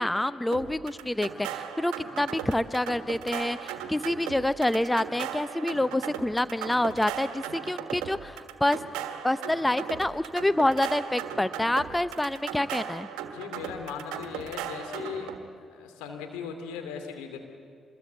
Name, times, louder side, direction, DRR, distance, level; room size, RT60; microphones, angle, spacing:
voice 1, 0.0-8.8 9.2-13.1, left 1 dB, 10° left, 15 dB, 0.7 m, -27 dB
sound 1, 0.5-15.4, right 9 dB, 80° right, 1.5 m, -37 dB
voice 2, 13.3-15.3 15.6-17.4, left 6 dB, 80° left, 5 dB, 2.6 m, -38 dB
25.0 x 21.5 x 8.1 m, 2.2 s
hypercardioid pair, 45°, 0 cm